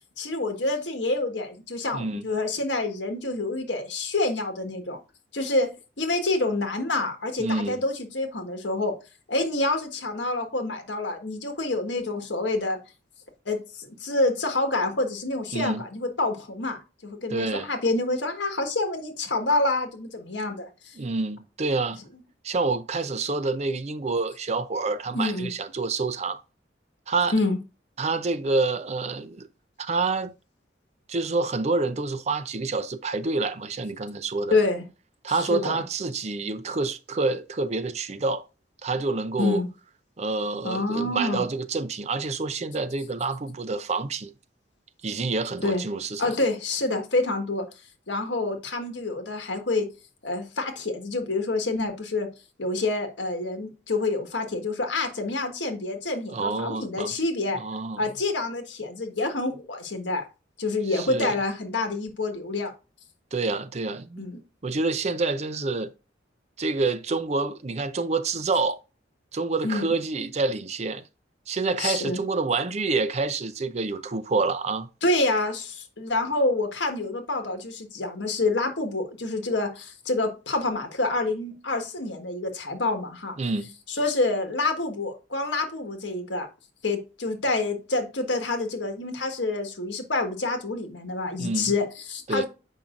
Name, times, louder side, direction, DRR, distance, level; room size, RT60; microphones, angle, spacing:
voice 1, 0.2-5.0 5.3-5.7 6.0-8.9 9.3-12.8 13.4-20.9 25.1-25.5 27.3-27.6 34.5-34.8 35.3-35.8 39.4-39.7 40.6-41.5 45.6-45.8 46.2-47.6 48.1-49.9 50.2-52.3 52.6-57.6 58.0-60.3 60.6-62.7 64.2-64.4 69.6-69.9 71.8-72.2 75.0-83.3 83.9-86.5 86.8-92.5, left 2 dB, 75° left, 1.5 m, -27 dB
voice 2, 1.9-2.3 7.4-7.8 15.5-15.8 17.3-17.7 21.0-22.0 22.4-26.4 27.1-27.3 28.0-29.5 29.8-30.3 31.1-34.6 35.2-38.4 38.8-39.6 40.2-44.3 45.0-46.3 56.3-57.1 57.6-58.1 60.9-61.3 63.3-64.3 64.6-65.9 66.6-68.8 69.3-71.0 71.5-74.9 83.4-83.7 91.4-91.7 92.3-92.4, right 3 dB, 35° right, 0.5 m, -27 dB
7.2 x 5.4 x 2.5 m
head